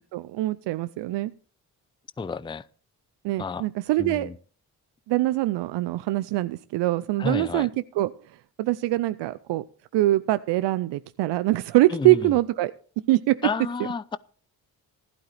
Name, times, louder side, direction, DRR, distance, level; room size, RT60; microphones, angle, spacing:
voice 1, 0.1-1.3 3.2-4.3 5.1-7.7 8.0-8.1 8.6-9.6 9.9-12.7 13.1-13.4, right 17 dB, 85° right, 0.5 m, -23 dB
voice 2, 2.2-2.7 3.4-3.7 4.0-4.4 7.2-7.7 11.9-12.4 13.4-14.2, left 4 dB, 10° left, 0.5 m, -30 dB
15.5 x 11.5 x 3.3 m
supercardioid pair, 55°, 42 cm